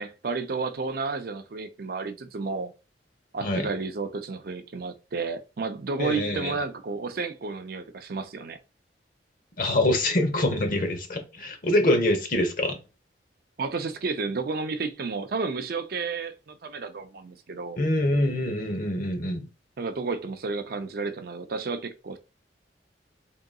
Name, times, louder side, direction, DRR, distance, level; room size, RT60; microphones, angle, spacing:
voice 1, 0.0-2.7 3.3-8.6 13.6-17.8 19.8-22.2, right 4 dB, 55° right, 0.4 m, -32 dB
voice 2, 6.0-6.5 9.6-12.8 17.8-19.5, left 1 dB, 50° left, 0.9 m, -25 dB
3.7 x 3.7 x 2.3 m
head